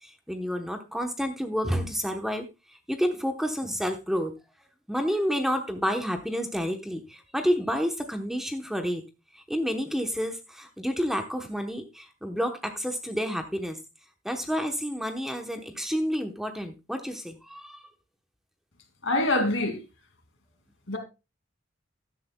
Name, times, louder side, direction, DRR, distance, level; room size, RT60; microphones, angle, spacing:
voice 1, 0.0-4.3 4.9-9.0 9.3-13.8 14.2-17.9, equal, ahead, 0.9 m, -30 dB
voice 2, 19.0-19.8 20.9-21.0, left 2 dB, 75° left, 2.5 m, -24 dB
13.5 x 10.5 x 2.3 m
head